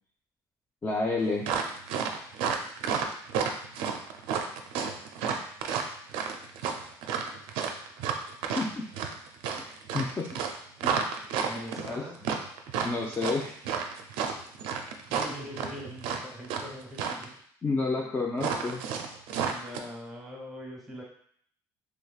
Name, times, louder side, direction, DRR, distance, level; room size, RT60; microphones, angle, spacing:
voice 1, 0.8-1.5 8.5-8.9 9.5-9.6 9.9-10.4 10.8-11.0 11.8-12.0 12.8-13.6 17.6-18.9, left 3 dB, 25° left, -2 dB, 0.5 m, -30 dB
sound 1, 1.4-16.7 16.9-17.3 18.4-19.8, right 6 dB, 80° right, 0.4 m, -31 dB
voice 2, 11.4-12.2 15.1-17.3 19.5-21.0, equal, ahead, -2 dB, 1.2 m, -42 dB
3.3 x 3.2 x 2.3 m, 0.62 s
supercardioid pair, 85°, 9 cm